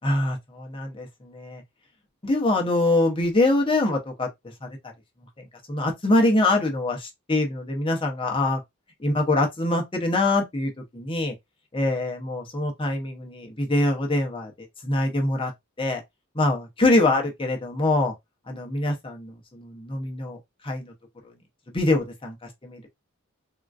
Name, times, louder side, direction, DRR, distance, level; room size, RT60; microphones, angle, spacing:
voice 1, 0.0-1.6 2.2-4.3 4.6-4.8 5.4-8.6 9.0-11.3 11.7-15.5 15.8-16.0 16.3-18.1 18.5-20.4 20.6-20.9 21.7-22.9, left 2 dB, 25° left, 0.7 m, -24 dB
3.6 x 2.4 x 2.3 m
head